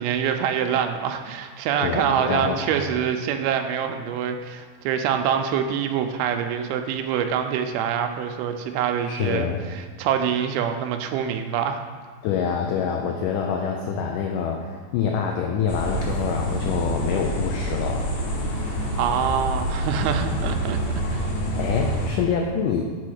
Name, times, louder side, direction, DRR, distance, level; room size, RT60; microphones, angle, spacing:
voice 1, 0.0-11.9 19.0-20.8 21.1-21.3, right 8 dB, 90° right, 6 dB, 2.5 m, -25 dB
voice 2, 1.8-2.7 9.0-9.6 12.2-18.1 21.6-22.8, left 7 dB, 85° left, 2 dB, 1.8 m, -26 dB
sound 1, 15.7-22.1, equal, 70° left, 2.7 m, -27 dB
6.2 x 4.2 x 6.4 m, 1.5 s
omnidirectional pair, 4.4 m